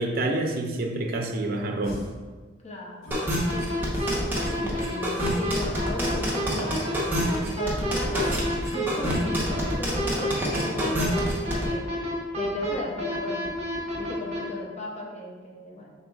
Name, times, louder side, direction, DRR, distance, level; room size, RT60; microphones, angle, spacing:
voice 1, 0.0-2.0, right 2 dB, 50° right, 3 dB, 0.5 m, -27 dB
sound 1, 1.8-2.2 3.0-3.4 3.9-4.4 5.2-5.6 6.0-6.4 7.1-7.6 8.2-8.6, left 1 dB, 85° left, 1.0 m, -42 dB
voice 2, 2.6-3.2 3.5-4.1 4.5-7.0 7.4-11.9 12.3-13.5 13.9-15.9, left 1 dB, 35° left, -1 dB, 0.7 m, -36 dB
sound 2, 3.1-11.6, equal, 10° right, 0.9 m, -27 dB
sound 3, 3.5-14.4, equal, 35° right, 1.2 m, -30 dB
5.3 x 3.8 x 2.4 m, 1.4 s
head